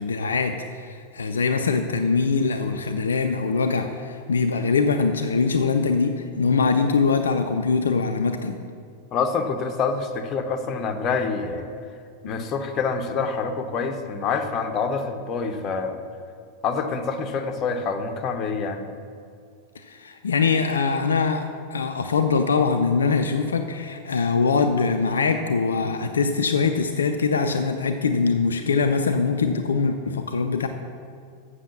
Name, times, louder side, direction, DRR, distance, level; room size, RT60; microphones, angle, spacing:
voice 1, 0.0-8.6 12.2-12.3 19.8-30.7, left 4 dB, 70° left, 6 dB, 0.4 m, -23 dB
voice 2, 9.1-11.7 12.2-16.0 16.6-18.9, left 5 dB, 30° left, 6 dB, 0.8 m, -26 dB
7.4 x 6.4 x 7.2 m, 2.3 s
figure-of-eight pair, 90°, 0 cm